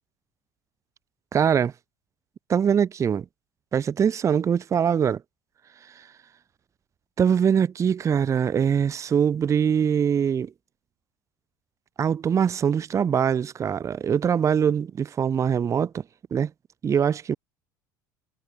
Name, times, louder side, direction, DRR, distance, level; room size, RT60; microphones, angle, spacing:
voice 1, 1.3-1.7 2.5-3.2 3.7-5.2 7.2-10.5 12.0-16.0 16.3-16.5 16.8-17.3, right 7 dB, 30° right, 0.6 m, -22 dB
hypercardioid pair, 85°, 10 cm